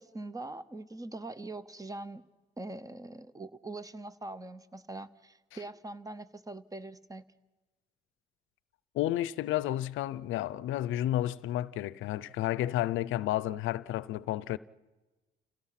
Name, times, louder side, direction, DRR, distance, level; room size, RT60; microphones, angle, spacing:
voice 1, 0.0-2.2 2.6-7.2, right 2 dB, 15° right, 1.0 m, -42 dB
voice 2, 8.9-14.6, left 13 dB, 85° left, 0.6 m, -31 dB
28.5 x 17.5 x 5.8 m
cardioid pair, 90°, 20 cm